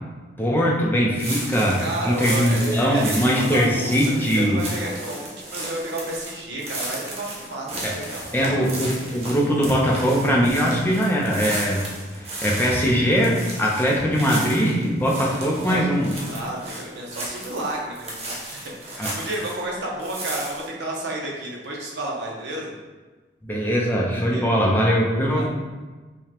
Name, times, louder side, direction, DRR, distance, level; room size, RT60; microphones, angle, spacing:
voice 1, 0.4-4.6 7.8-7.9 8.3-11.8 12.1-16.1 19.0-19.1 23.4-25.5, equal, 10° left, -3 dB, 0.5 m, -21 dB
sound 1, 1.2-19.7 20.0-20.7, right 1 dB, 35° right, 0.8 m, -34 dB
voice 2, 1.8-8.6 15.6-15.9 16.3-22.7 24.3-24.4 25.3-25.5, right 1 dB, 75° right, -3 dB, 0.8 m, -32 dB
4.9 x 2.3 x 2.9 m, 1.3 s
head